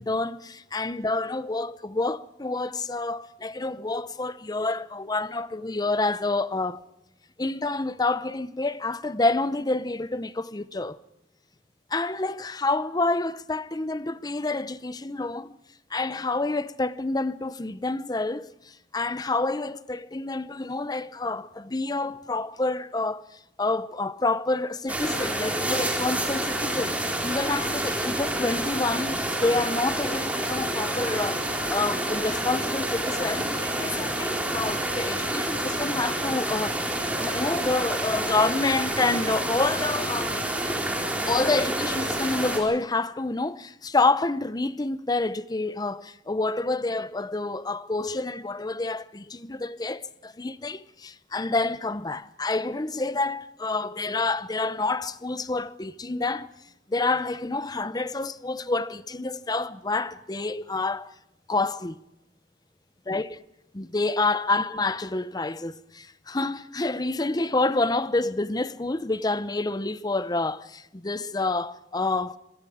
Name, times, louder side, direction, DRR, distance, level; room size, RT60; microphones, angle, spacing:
voice 1, 0.0-6.8 7.4-11.0 11.9-15.5 15.9-23.3 23.6-40.4 41.3-56.5 56.9-61.1 61.5-62.0 63.1-63.4 63.7-72.4, left 3 dB, 20° left, 0.7 m, -28 dB
sound 1, 24.9-42.6, right 1 dB, 10° right, 3.8 m, -28 dB
26.0 x 22.5 x 5.0 m
head